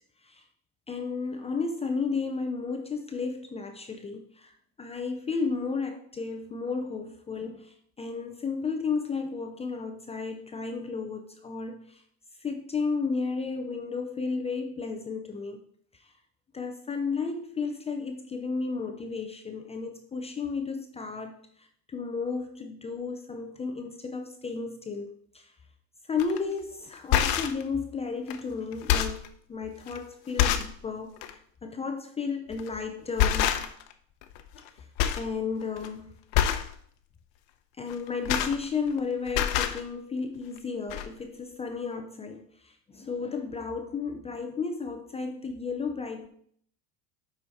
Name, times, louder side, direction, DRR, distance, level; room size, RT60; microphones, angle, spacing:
voice 1, 0.9-4.5 4.8-12.0 12.4-15.6 15.9-16.1 16.5-25.5 26.1-33.6 34.8-34.9 35.2-36.2 37.8-46.3, left 4 dB, 15° left, 5 dB, 0.5 m, -33 dB
sound 1, 26.2-26.4 26.9-27.6 28.3-28.4 28.7-29.3 29.9-30.0 30.4-30.8 31.2-31.3 32.5-32.8 33.2-33.9 34.2-34.7 35.0-35.3 35.6-35.9 36.3-36.7 37.9-39.0 39.3-39.8 40.6-40.7 40.9-41.1, left 10 dB, 70° left, 0.9 m, -26 dB
7.7 x 5.0 x 4.1 m, 0.62 s
supercardioid pair, 135°, 39 cm